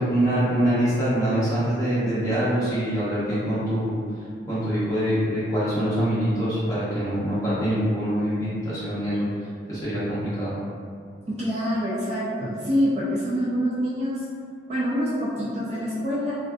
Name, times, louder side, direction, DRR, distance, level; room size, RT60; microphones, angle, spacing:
voice 1, 0.0-4.0 4.5-9.3 9.7-10.5, equal, 20° left, -12 dB, 0.8 m, -24 dB
voice 2, 11.3-14.2 14.7-16.4, equal, 35° right, -7 dB, 0.3 m, -26 dB
2.5 x 2.2 x 2.3 m, 2.2 s
head